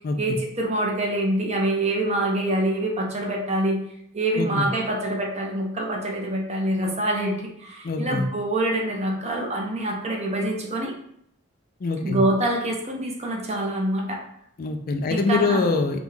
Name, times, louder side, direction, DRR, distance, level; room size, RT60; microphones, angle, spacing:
voice 1, 0.2-3.8 4.1-10.9 12.0-14.2 15.1-15.6, right 1 dB, 30° right, -1 dB, 0.8 m, -25 dB
voice 2, 7.8-8.2 11.8-12.2 14.6-16.0, left 3 dB, 45° left, 5 dB, 0.4 m, -24 dB
5.2 x 2.4 x 3.3 m, 0.70 s
head